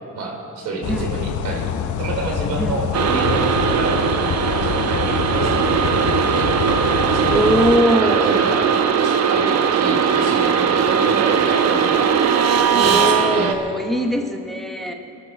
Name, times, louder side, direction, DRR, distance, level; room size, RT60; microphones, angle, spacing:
voice 1, 0.1-1.7 2.0-4.1 4.5-6.9 7.1-7.5 8.0-12.0 12.8-13.6, right 3 dB, 85° right, 0 dB, 3.5 m, -28 dB
sound 1, 0.8-7.8, left 9 dB, 75° left, 0.8 m, -26 dB
sound 2, 2.9-13.5, right 7 dB, 60° right, 1.0 m, -19 dB
voice 2, 7.3-8.4 12.7-14.9, equal, ahead, 3 dB, 1.3 m, -21 dB
22.5 x 13.0 x 4.2 m, 2.6 s
cardioid pair, 90°, 30 cm